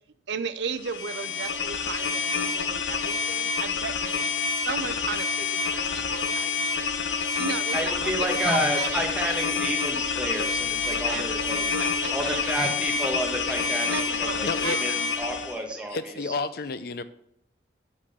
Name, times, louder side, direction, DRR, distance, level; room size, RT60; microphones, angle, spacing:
voice 1, 0.3-4.1 4.6-6.9 7.4-9.0 11.0-12.5 13.9-15.0, right 5 dB, 65° right, 12 dB, 0.5 m, -35 dB
sound 1, 0.8-15.6, left 5 dB, 75° left, 1.0 m, -28 dB
voice 2, 7.7-11.6 12.1-16.0 16.2-16.3, equal, 5° right, 1 dB, 1.4 m, -30 dB
sound 2, 8.0-13.7 13.9-15.1, right 3 dB, 85° right, 1.3 m, -49 dB
voice 3, 14.4-14.8 15.9-17.0, left 4 dB, 50° left, 13 dB, 0.4 m, -31 dB
11.0 x 3.8 x 6.6 m, 0.74 s
head